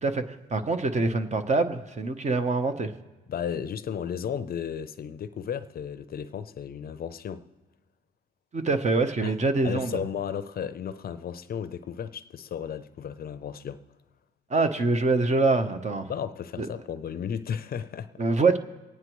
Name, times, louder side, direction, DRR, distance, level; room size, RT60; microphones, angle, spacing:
voice 1, 0.0-2.9 8.5-10.0 14.5-16.1 16.6-16.7 18.2-18.6, right 3 dB, 35° right, 0.9 m, -25 dB
voice 2, 3.3-7.5 9.2-9.3 9.6-13.8 16.1-18.2, left 8 dB, 50° left, 0.5 m, -34 dB
24.5 x 9.5 x 3.1 m
cardioid pair, 90°, 20 cm